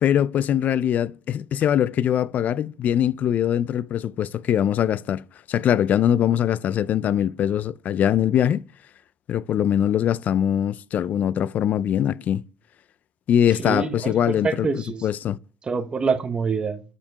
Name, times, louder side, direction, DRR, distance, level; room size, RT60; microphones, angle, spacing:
voice 1, 0.0-5.2 5.5-8.6 9.3-12.4 13.3-14.7 15.0-15.4, left 10 dB, 45° left, 0.3 m, -22 dB
voice 2, 13.6-15.1 15.6-16.8, right 5 dB, 25° right, 1.0 m, -26 dB
6.8 x 5.9 x 4.6 m
cardioid pair, 115°, 4 cm